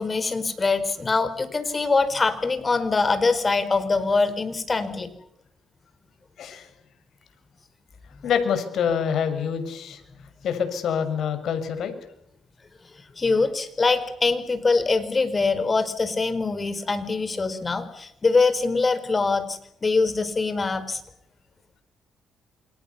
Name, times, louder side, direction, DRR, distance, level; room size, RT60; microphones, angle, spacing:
voice 1, 0.0-5.1 13.2-21.0, left 3 dB, 30° left, 11 dB, 4.8 m, -23 dB
voice 2, 6.4-6.7 8.2-10.0 10.4-11.9, left 7 dB, 70° left, 8 dB, 6.8 m, -26 dB
28.5 x 26.5 x 7.2 m, 0.76 s
cardioid pair, 90°, 0 cm